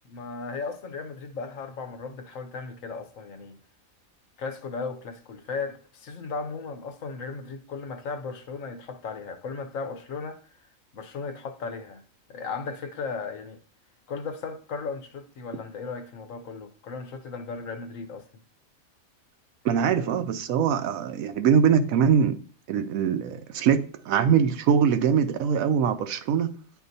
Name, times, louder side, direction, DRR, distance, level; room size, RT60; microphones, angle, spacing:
voice 1, 0.1-3.6 4.4-10.4 10.9-12.0 12.3-13.6 14.1-18.2, left 4 dB, 70° left, 1.2 m, -36 dB
voice 2, 19.6-22.4 22.7-26.6, right 7 dB, 80° right, 1.0 m, -22 dB
10.5 x 4.5 x 2.7 m
omnidirectional pair, 1.5 m